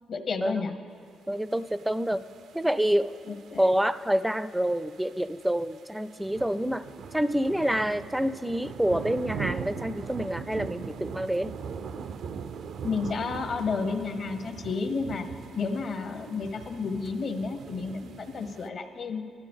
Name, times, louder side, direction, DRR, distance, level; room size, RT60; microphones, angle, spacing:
voice 1, 0.1-0.7 3.2-3.6 12.8-15.3 15.6-19.2, left 4 dB, 55° left, 7 dB, 1.0 m, -31 dB
voice 2, 1.3-2.2 2.5-3.2 3.6-6.9 7.1-11.5, equal, 5° right, 14 dB, 0.4 m, -27 dB
sound 1, 1.5-18.7, right 6 dB, 70° right, 0.4 m, -41 dB
19.0 x 12.5 x 3.5 m, 2.6 s
cardioid pair, 90°, 0 cm